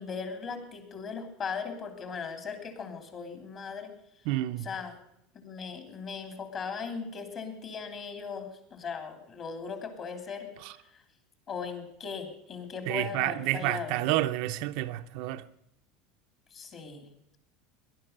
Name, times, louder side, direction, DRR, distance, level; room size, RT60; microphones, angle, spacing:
voice 1, 0.0-3.9 4.6-5.0 5.3-10.5 10.9-11.0 11.5-14.1 16.5-17.1, left 5 dB, 30° left, 3.0 m, -38 dB
voice 2, 4.3-4.7 10.6-10.7 12.9-15.4, right 16 dB, 60° right, 0.7 m, -29 dB
18.5 x 11.5 x 6.6 m
supercardioid pair, 160°, 0 cm